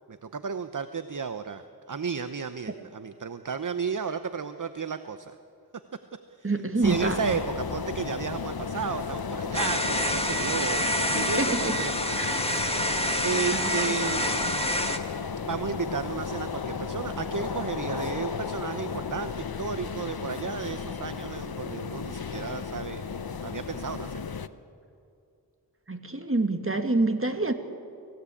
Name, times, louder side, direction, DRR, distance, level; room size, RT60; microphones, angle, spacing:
voice 1, 0.1-1.6 1.9-5.3 6.4-6.5 6.8-11.9 13.2-14.8 15.4-23.1 23.4-24.2, right 5 dB, 50° right, 10 dB, 0.9 m, -33 dB
voice 2, 6.4-7.2 11.4-11.7 12.2-12.4 13.5-14.0 25.9-27.5, right 2 dB, 35° right, 6 dB, 2.1 m, -27 dB
sound 1, 6.8-24.5, left 6 dB, 65° left, 0.9 m, -34 dB
sound 2, 9.5-15.0, equal, 15° left, 1.9 m, -27 dB
28.0 x 16.5 x 8.5 m, 2.5 s
wide cardioid pair, 55°, 39 cm